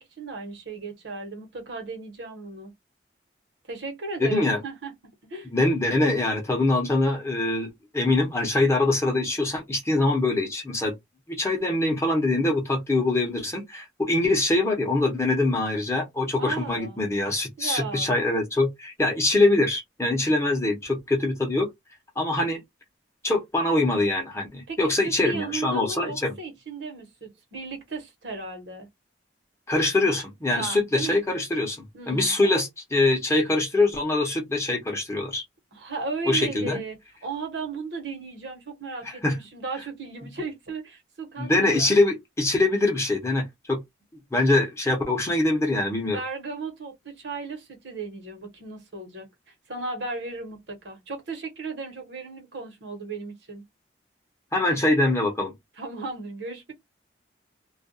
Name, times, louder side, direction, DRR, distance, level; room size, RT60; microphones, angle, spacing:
voice 1, 0.0-2.7 3.7-5.5 16.4-17.0 17.6-18.1 24.7-24.8 25.0-28.9 30.5-31.2 31.9-32.5 35.7-42.0 46.0-49.3 49.7-53.6 55.8-56.7, right 3 dB, 70° right, 1.0 m, -35 dB
voice 2, 4.2-4.6 5.5-10.9 11.3-21.7 22.2-22.6 23.2-26.3 29.7-35.4 36.3-36.8 39.2-39.4 41.4-43.8 44.3-46.2 54.5-55.5, left 2 dB, 15° left, 0.7 m, -23 dB
2.3 x 2.2 x 2.6 m
head